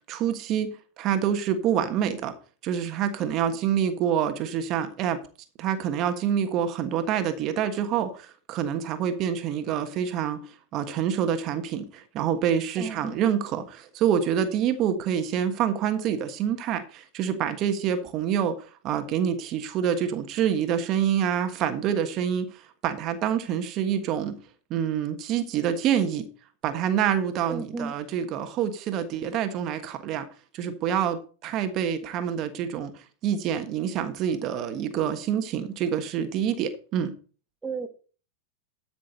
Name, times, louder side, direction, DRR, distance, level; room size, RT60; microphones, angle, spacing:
voice 1, 0.1-2.3 2.6-5.2 5.6-10.4 10.7-18.6 18.8-24.4 24.7-26.3 26.6-30.3 30.5-32.9 33.2-37.1, right 9 dB, 45° right, 1.4 m, -27 dB
voice 2, 12.8-13.1 27.5-27.9 37.6-37.9, right 4 dB, 15° right, 1.4 m, -33 dB
13.0 x 6.2 x 4.2 m
hypercardioid pair, 105°, 0 cm